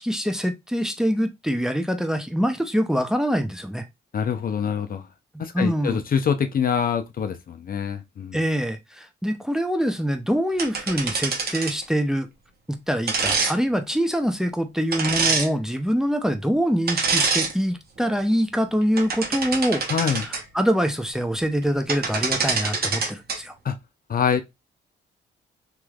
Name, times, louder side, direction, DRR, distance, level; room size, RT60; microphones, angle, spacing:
voice 1, 0.0-3.9 5.3-6.0 8.3-12.3 12.7-19.8 20.5-23.5, equal, 5° right, 0.6 m, -24 dB
voice 2, 4.1-5.1 5.4-8.4 19.9-20.3 23.6-23.8 24.1-24.4, left 7 dB, 50° left, 0.5 m, -25 dB
sound 1, 10.6-11.8 13.1-13.5 14.9-15.5 16.9-17.5 18.0-18.2 18.8-20.4 21.6-21.7 21.9-23.4, right 4 dB, 55° right, 1.1 m, -25 dB
3.1 x 3.0 x 2.4 m
supercardioid pair, 60°, 20 cm